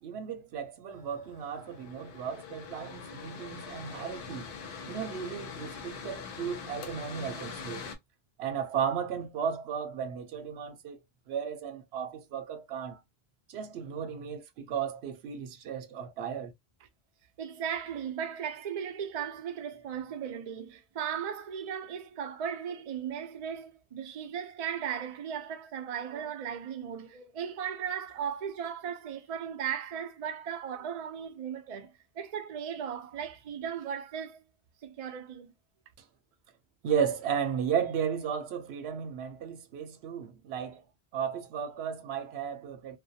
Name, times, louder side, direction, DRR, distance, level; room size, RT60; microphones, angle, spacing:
voice 1, 0.0-4.5 4.9-7.8 8.4-11.0 11.3-13.0 13.5-16.5 36.8-40.8 41.1-43.0, right 7 dB, 85° right, 0.8 m, -34 dB
Mechanical fan, 0.9-8.0, left 6 dB, 65° left, 0.7 m, -43 dB
voice 2, 17.4-34.4 34.8-35.5, right 8 dB, 50° right, 0.5 m, -37 dB
2.3 x 2.1 x 2.7 m
omnidirectional pair, 1.0 m